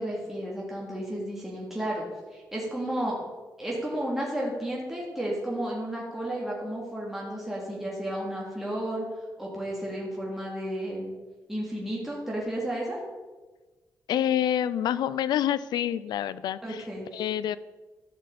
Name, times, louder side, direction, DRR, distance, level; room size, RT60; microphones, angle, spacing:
voice 1, 0.0-2.0 2.3-3.2 3.6-9.0 9.4-11.1 11.5-13.0 16.6-17.1, right 1 dB, 5° right, -5 dB, 2.8 m, -32 dB
voice 2, 14.1-16.8 17.1-17.6, left 10 dB, 85° left, 17 dB, 0.4 m, -27 dB
12.5 x 6.4 x 4.2 m, 1.2 s
cardioid pair, 80°, 7 cm